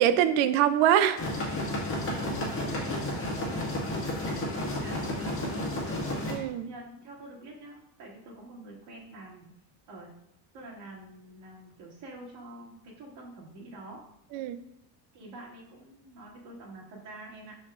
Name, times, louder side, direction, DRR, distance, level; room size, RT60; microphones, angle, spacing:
voice 1, 0.0-1.5 6.3-6.7 14.3-14.6, right 10 dB, 75° right, 0.7 m, -24 dB
sound 1, 1.2-6.3, left 1 dB, 25° left, 1.7 m, -32 dB
voice 2, 2.0-5.7 6.6-9.5 9.9-10.1 10.5-14.0 15.1-17.6, right 2 dB, 55° right, 2.6 m, -46 dB
11.5 x 4.5 x 2.5 m
cardioid pair, 150°, 49 cm